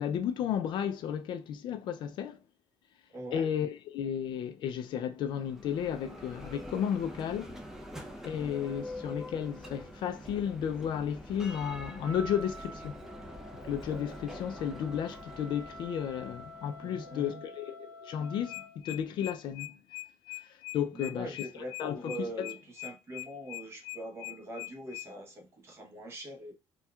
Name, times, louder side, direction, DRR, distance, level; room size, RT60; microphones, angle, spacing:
voice 1, 0.0-2.4 3.3-7.6 8.2-13.0 13.7-19.8 20.7-21.4 21.8-22.5, left 8 dB, 55° left, 0.4 m, -33 dB
voice 2, 3.1-3.5 16.8-17.4 20.9-26.5, right 1 dB, 25° right, 1.0 m, -42 dB
Bell, 5.3-17.1, left 1 dB, 5° right, 0.6 m, -45 dB
Wind instrument woodwind instrument, 12.0-18.8, equal, 60° right, 1.0 m, -48 dB
sound 1, 18.2-25.1, left 19 dB, 80° left, 0.7 m, -42 dB
4.2 x 2.3 x 2.3 m
cardioid pair, 155°, 10 cm